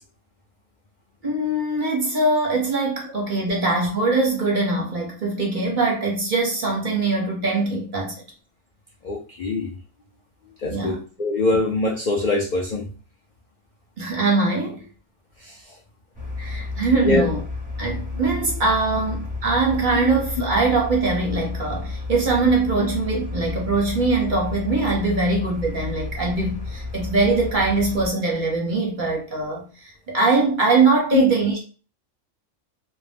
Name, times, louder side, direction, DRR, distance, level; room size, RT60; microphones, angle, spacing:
voice 1, 1.2-8.1 10.7-11.0 14.0-14.9 16.4-17.4 17.8-31.6, right 3 dB, 50° right, 0.7 m, -22 dB
voice 2, 9.0-9.7 10.6-12.8 15.4-15.6 17.0-17.3 20.4-20.5 22.8-22.9 31.1-31.2, left 3 dB, 80° left, 0.4 m, -23 dB
sound 1, 16.1-28.1, left 3 dB, 10° right, 0.5 m, -32 dB
2.5 x 2.1 x 3.3 m
omnidirectional pair, 1.4 m